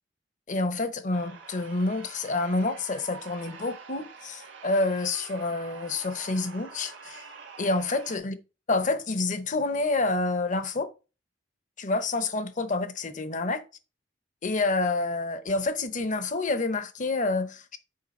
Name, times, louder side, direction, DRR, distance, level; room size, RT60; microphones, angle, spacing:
voice 1, 0.5-7.3 7.6-8.3 8.7-10.9 11.8-13.6 14.4-17.8, left 3 dB, 45° left, 0.8 m, -28 dB
sound 1, 1.1-8.2, right 5 dB, 85° right, 1.6 m, -46 dB
6.7 x 4.8 x 4.2 m
head